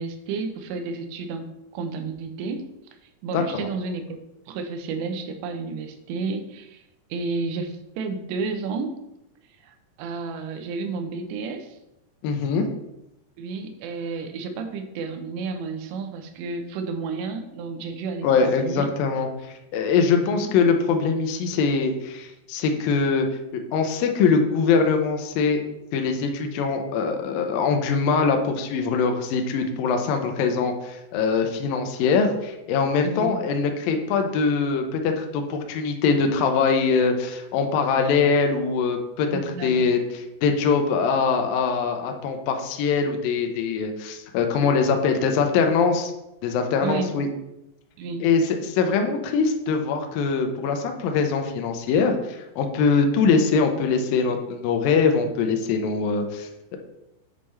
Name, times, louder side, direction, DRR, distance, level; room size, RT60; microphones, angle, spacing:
voice 1, 0.0-2.7 3.2-4.0 4.5-6.8 7.1-9.0 9.6-11.8 13.4-18.9 20.1-20.5 33.0-33.4 39.3-39.8 46.8-47.1 48.0-48.3, right 4 dB, 85° right, 6 dB, 3.0 m, -31 dB
voice 2, 3.3-3.7 12.2-12.7 18.2-23.3 23.5-25.6 25.9-46.1 46.4-47.3 48.2-56.8, left 5 dB, 80° left, 4 dB, 2.1 m, -23 dB
7.4 x 5.4 x 3.2 m, 0.89 s
omnidirectional pair, 5.0 m